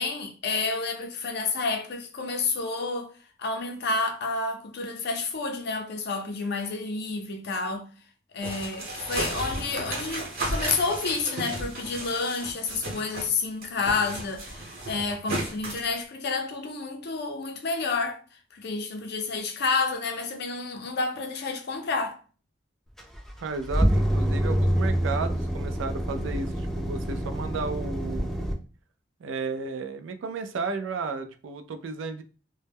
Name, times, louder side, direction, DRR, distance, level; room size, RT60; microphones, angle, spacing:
voice 1, 0.0-3.1 3.4-7.9 8.3-18.2 18.5-22.2, left 4 dB, 60° left, 0.5 m, -30 dB
sound 1, 8.4-13.3 13.6-15.9, right 1 dB, 50° right, 0.9 m, -34 dB
sound 2, 23.0-28.5, equal, ahead, 0.4 m, -26 dB
voice 2, 23.4-28.3 29.2-32.2, right 4 dB, 75° right, 0.4 m, -33 dB
2.1 x 2.0 x 3.4 m
head